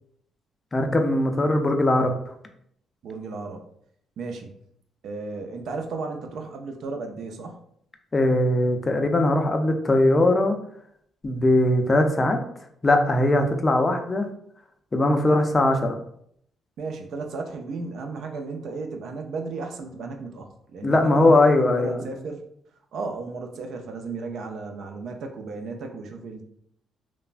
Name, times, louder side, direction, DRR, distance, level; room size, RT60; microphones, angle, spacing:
voice 1, 0.7-2.3 8.1-10.6 11.2-12.4 12.8-14.3 14.9-16.0 20.8-22.1, left 1 dB, 25° left, 5 dB, 0.4 m, -20 dB
voice 2, 3.0-3.6 4.2-4.5 5.0-7.6 16.8-22.4 22.9-26.4, right 3 dB, 70° right, 4 dB, 0.4 m, -34 dB
3.1 x 2.0 x 2.4 m, 0.70 s
cardioid pair, 90°, 0 cm